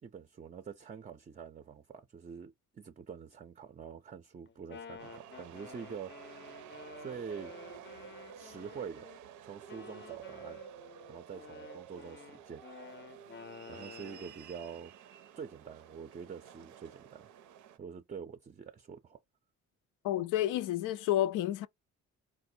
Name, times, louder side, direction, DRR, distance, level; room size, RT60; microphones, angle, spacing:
voice 1, 0.0-6.5 7.0-7.5 8.3-9.1 9.4-10.6 11.1-12.6 13.7-14.9 15.3-17.3 17.8-19.2, right 6 dB, 25° right, 0.4 m, -46 dB
Wind instrument woodwind instrument, 4.5-9.2 9.7-14.4, left 6 dB, 40° left, 0.5 m, -51 dB
sound 1, 5.0-17.8, right 10 dB, 80° right, 0.5 m, -51 dB
voice 2, 20.0-21.7, left 13 dB, 90° left, 0.5 m, -30 dB
4.1 x 2.1 x 2.6 m
cardioid pair, 90°, 30 cm